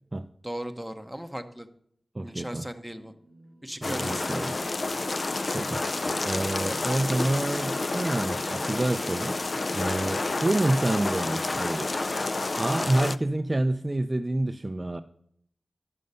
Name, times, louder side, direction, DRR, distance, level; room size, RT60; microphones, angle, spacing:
voice 1, 0.4-1.7 2.2-3.1 3.6-4.5, equal, ahead, 6 dB, 0.8 m, -37 dB
voice 2, 2.1-2.7 3.8-4.5 5.5-6.0 6.2-9.4 9.7-12.1 12.6-15.0, right 1 dB, 30° right, 9 dB, 0.4 m, -28 dB
sound 1, 2.9-9.8, right 1 dB, 75° left, 4.2 m, -51 dB
sound 2, 3.8-13.2, left 2 dB, 45° left, 0.3 m, -29 dB
10.5 x 6.5 x 5.5 m, 0.67 s
wide cardioid pair, 85°, 0 cm